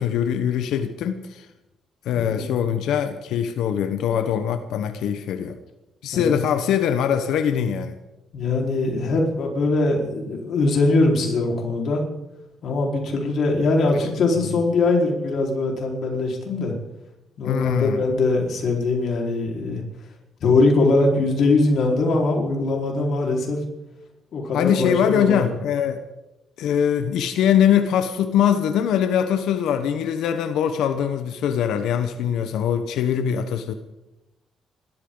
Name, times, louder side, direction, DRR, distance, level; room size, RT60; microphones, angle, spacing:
voice 1, 0.0-1.5 2.0-5.6 6.0-7.9 13.9-14.1 17.4-18.0 24.5-26.0 26.6-33.7, left 9 dB, 85° left, 8 dB, 1.1 m, -22 dB
voice 2, 8.3-12.1 12.6-16.7 17.4-19.8 20.4-23.6 24.3-25.5, left 3 dB, 65° left, 0 dB, 4.5 m, -21 dB
27.0 x 13.5 x 3.9 m, 0.98 s
cardioid pair, 90°, 0 cm